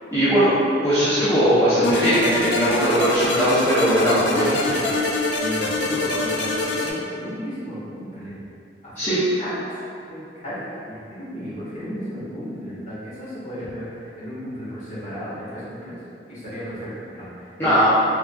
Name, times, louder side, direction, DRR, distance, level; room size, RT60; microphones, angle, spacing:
voice 1, 0.1-0.5 0.8-4.8 9.0-9.2 17.6-17.9, equal, 15° left, -15 dB, 0.6 m, -19 dB
sound 1, 1.8-6.9, left 2 dB, 75° left, 0.4 m, -25 dB
voice 2, 3.9-5.0 5.3-8.4 8.8-9.5 10.1-10.2 10.4-10.5 10.8-16.0 16.3-17.8, equal, 40° left, -13 dB, 1.3 m, -34 dB
3.4 x 2.6 x 2.2 m, 2.6 s
head